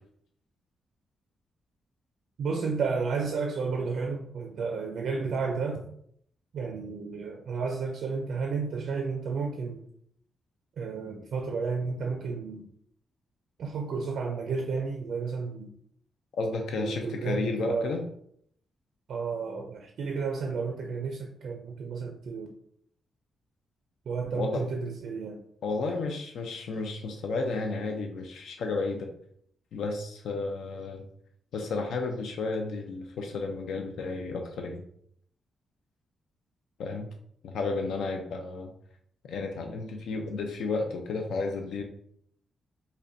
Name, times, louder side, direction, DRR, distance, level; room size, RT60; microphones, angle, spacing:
voice 1, 2.4-5.8 6.5-9.8 10.8-12.6 13.6-15.7 16.7-18.0 19.1-22.5 24.1-25.4, right 4 dB, 60° right, 3 dB, 0.4 m, -32 dB
voice 2, 16.4-18.0 24.3-24.6 25.6-29.1 29.7-31.1 31.5-34.8 36.8-37.1 37.4-38.7 39.3-41.8, left 3 dB, 80° left, 3 dB, 0.4 m, -32 dB
5.1 x 2.1 x 2.6 m, 0.67 s
wide cardioid pair, 175°, 0 cm